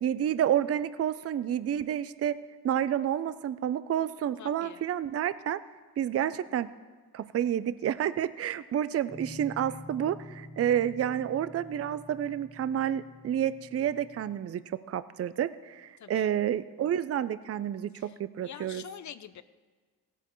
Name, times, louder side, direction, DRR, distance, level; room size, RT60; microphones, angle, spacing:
voice 1, 0.0-2.4 2.6-5.6 6.0-6.7 7.1-18.8, right 10 dB, 40° right, 14 dB, 0.4 m, -29 dB
voice 2, 4.4-4.9 16.0-16.3 17.9-19.4, left 9 dB, 50° left, 14 dB, 0.6 m, -46 dB
Guitar, 9.1-14.3, left 1 dB, 15° left, 0.8 m, -48 dB
17.0 x 10.0 x 3.0 m, 1.4 s
cardioid pair, 75°, 38 cm